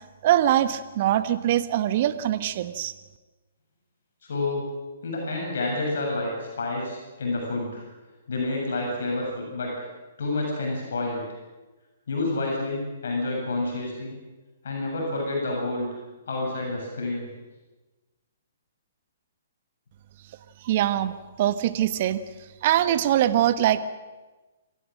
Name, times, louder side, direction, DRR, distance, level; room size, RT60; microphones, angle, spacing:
voice 1, 0.2-2.9 20.6-22.2 22.6-23.8, right 12 dB, 45° right, 12 dB, 1.3 m, -23 dB
voice 2, 4.2-4.6 5.0-7.8 8.3-9.8 10.2-11.2 12.1-14.2 14.6-15.9 16.3-17.3, left 2 dB, 65° left, -1 dB, 7.7 m, -29 dB
27.0 x 15.0 x 7.7 m, 1.2 s
figure-of-eight pair, 125°, 0 cm